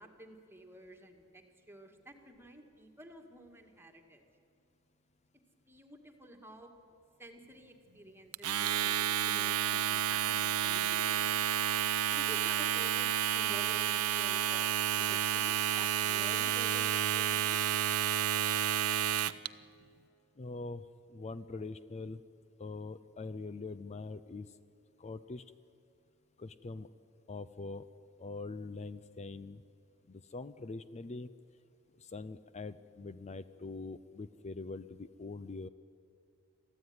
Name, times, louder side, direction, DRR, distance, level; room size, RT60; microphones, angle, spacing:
voice 1, 0.0-4.2 5.7-6.7 7.2-11.4 12.1-17.6, right 1 dB, 10° right, 4 dB, 2.0 m, -51 dB
Domestic sounds home sounds, 8.3-19.5, right 10 dB, 80° right, 0.7 m, -30 dB
voice 2, 20.4-20.9 21.1-22.2 22.6-24.5 25.0-25.4 26.4-26.9 27.3-27.9 28.2-29.6 30.1-31.3 32.0-35.7, left 3 dB, 30° left, 14 dB, 0.5 m, -43 dB
23.0 x 15.0 x 9.6 m, 2.6 s
head